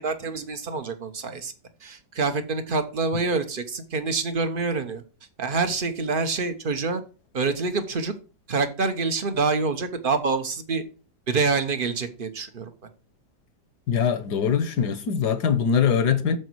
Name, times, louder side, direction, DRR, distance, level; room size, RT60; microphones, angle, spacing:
voice 1, 0.0-1.5 1.8-5.0 5.4-7.0 7.3-8.1 8.5-10.8 11.3-12.7, right 4 dB, 35° right, 1.1 m, -26 dB
voice 2, 13.9-16.4, left 7 dB, 70° left, 1.6 m, -22 dB
9.4 x 7.1 x 4.6 m
omnidirectional pair, 1.8 m